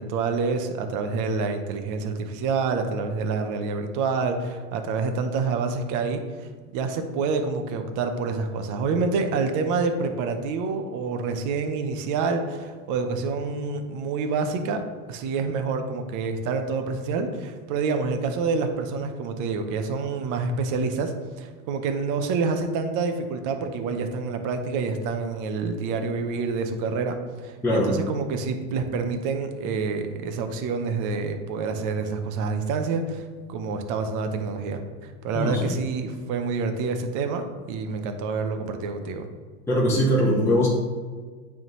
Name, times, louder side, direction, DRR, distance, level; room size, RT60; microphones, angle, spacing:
voice 1, 0.0-14.8 15.1-21.1 21.4-39.3, right 4 dB, 45° right, 6 dB, 0.8 m, -27 dB
voice 2, 27.6-28.0 35.3-35.8 39.7-40.7, equal, 5° left, -7 dB, 1.1 m, -21 dB
8.8 x 3.6 x 3.1 m, 1.5 s
supercardioid pair, 120°, 43 cm